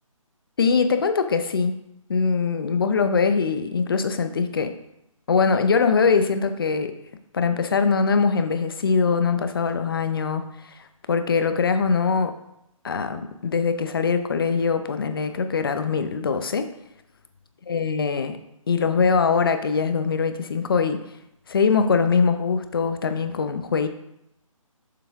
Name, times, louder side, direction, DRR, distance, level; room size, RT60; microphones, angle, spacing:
voice 1, 0.6-1.8 2.1-4.7 5.3-6.9 7.3-10.8 11.1-12.3 12.8-16.7 17.7-18.4 18.7-21.0 21.5-23.9, left 5 dB, 40° left, 8 dB, 0.6 m, -22 dB
7.1 x 6.7 x 3.5 m, 0.83 s
hypercardioid pair, 170°, 18 cm